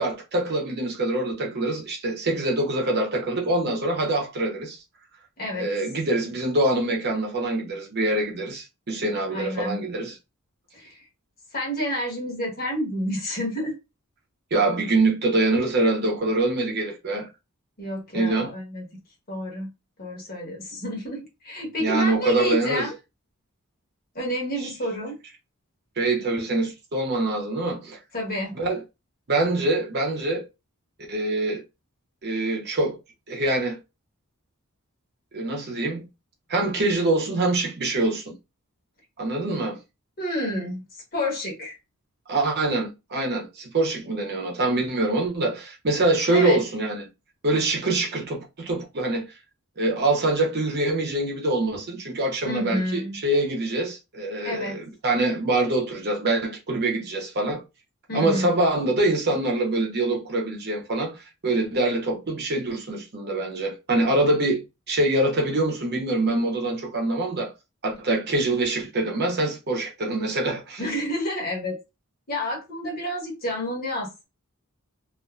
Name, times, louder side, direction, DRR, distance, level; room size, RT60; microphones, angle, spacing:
voice 1, 0.0-4.8 5.6-10.1 14.5-17.3 18.1-18.5 21.8-22.9 24.6-24.7 26.0-28.0 28.5-28.8 29.3-30.4 31.1-31.6 32.2-33.0 33.3-33.8 35.3-36.1 36.5-38.3 39.2-39.8 42.3-47.1 47.4-49.2 49.8-57.6 58.1-64.6 64.9-67.5 67.8-70.8, right 2 dB, 50° right, 0.7 m, -24 dB
voice 2, 5.4-5.7 9.3-9.8 10.7-11.0 11.5-13.8 17.8-18.8 19.3-19.7 20.0-22.9 24.1-25.2 28.1-28.5 40.2-40.8 41.1-41.8 46.3-46.6 52.4-53.2 54.4-54.8 58.1-58.5 70.8-71.8 72.3-74.3, left 1 dB, 45° left, 1.1 m, -29 dB
2.5 x 2.5 x 2.3 m
head